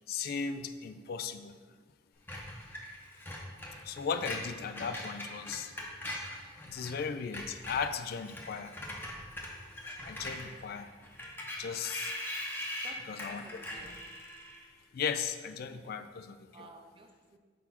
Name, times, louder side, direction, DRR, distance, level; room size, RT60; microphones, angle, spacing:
voice 1, 0.1-1.6 3.7-5.7 6.6-8.7 10.0-10.9 11.6-12.2 13.1-13.6 14.9-16.7, left 6 dB, 55° left, 10 dB, 0.3 m, -36 dB
Screech, 2.3-7.0 7.2-14.7, left 1 dB, 10° left, 0.8 m, -42 dB
voice 2, 12.8-14.0 16.5-17.4, right 2 dB, 30° right, 5 dB, 0.5 m, -53 dB
4.4 x 4.2 x 5.7 m, 1.5 s
head